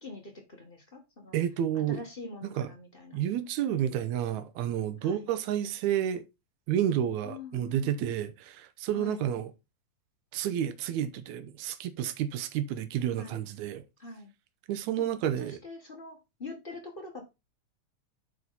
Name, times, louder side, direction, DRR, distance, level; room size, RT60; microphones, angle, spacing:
voice 1, 0.0-1.4 1.9-3.2 5.0-5.3 7.2-8.1 8.9-9.3 13.2-13.4 14.0-14.3 15.0-15.1 15.4-17.2, left 2 dB, 25° left, 1.2 m, -44 dB
voice 2, 1.3-2.0 2.4-2.7 3.1-6.2 6.7-9.5 10.3-13.8 14.7-15.6, right 10 dB, 80° right, 2.2 m, -30 dB
9.5 x 4.8 x 4.0 m
omnidirectional pair, 3.4 m